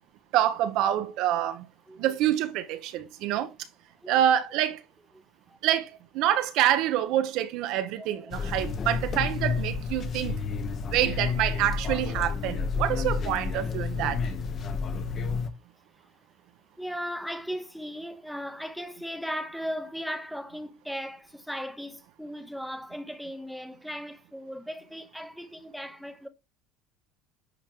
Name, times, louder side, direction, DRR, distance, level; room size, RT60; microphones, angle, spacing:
voice 1, 0.3-1.7 2.0-3.5 4.1-4.8 5.6-10.4 10.9-14.2, right 12 dB, 60° right, 1.0 m, -26 dB
voice 2, 8.0-8.3 16.8-26.3, equal, ahead, 0.9 m, -37 dB
sound 1, 8.3-15.5, left 5 dB, 30° left, 1.0 m, -30 dB
9.9 x 4.8 x 3.6 m
cardioid pair, 155°, 0 cm